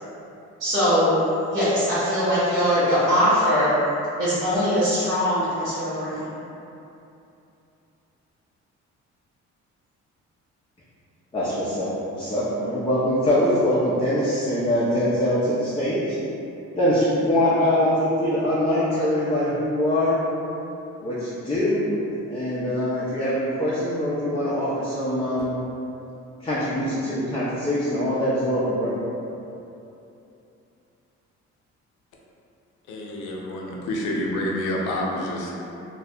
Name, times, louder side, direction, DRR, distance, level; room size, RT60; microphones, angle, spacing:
voice 1, 0.6-1.2 1.5-3.7 4.2-6.3, equal, 80° right, -14 dB, 0.9 m, -21 dB
voice 2, 11.3-16.2 16.7-20.2 21.0-21.8 22.3-25.5 26.4-29.0, left 1 dB, 20° left, -9 dB, 0.4 m, -23 dB
voice 3, 32.9-35.5, left 1 dB, 80° left, -3 dB, 0.5 m, -28 dB
2.3 x 2.1 x 2.7 m, 2.8 s
cardioid pair, 90°, 30 cm